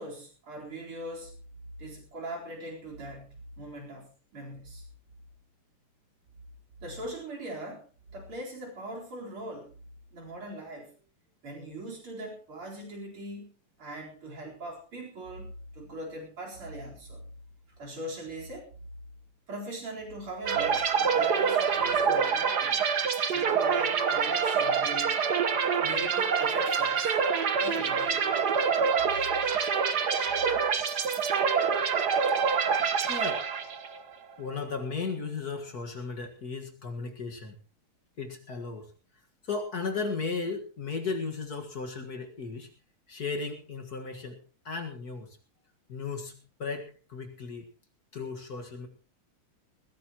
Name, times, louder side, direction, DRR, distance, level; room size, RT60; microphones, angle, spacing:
voice 1, 0.0-1.4 1.8-4.8 6.8-7.9 8.1-9.7 10.1-10.9 11.4-13.5 13.8-17.2 17.8-18.7 19.5-22.9 23.3-25.1 25.8-27.2 27.6-28.3 30.3-30.7, right 1 dB, 70° right, -2 dB, 5.1 m, -41 dB
sound 1, 20.5-34.0, right 6 dB, 50° right, 1.7 m, -26 dB
voice 2, 33.1-33.4 34.4-37.6 38.2-38.9 39.4-42.7 43.1-44.4 44.6-45.4 45.9-47.7 48.1-48.9, left 4 dB, 45° left, 4 dB, 2.1 m, -35 dB
20.5 x 16.5 x 3.0 m, 0.35 s
omnidirectional pair, 2.4 m